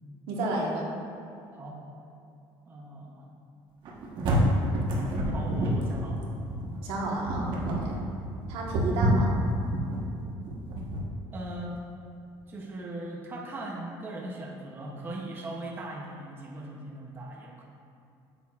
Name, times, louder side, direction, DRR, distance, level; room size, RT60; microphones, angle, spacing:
voice 1, 0.3-0.9 6.8-8.0 8.5-9.3, right 2 dB, 75° right, -1 dB, 1.1 m, -31 dB
voice 2, 2.7-3.3 5.3-6.3 11.3-11.8 12.5-17.6, right 1 dB, 20° right, -1 dB, 0.6 m, -39 dB
sound 1, 3.8-11.0, equal, 55° right, 1.1 m, -28 dB
8.7 x 6.5 x 2.4 m, 2.5 s
cardioid pair, 170°, 10 cm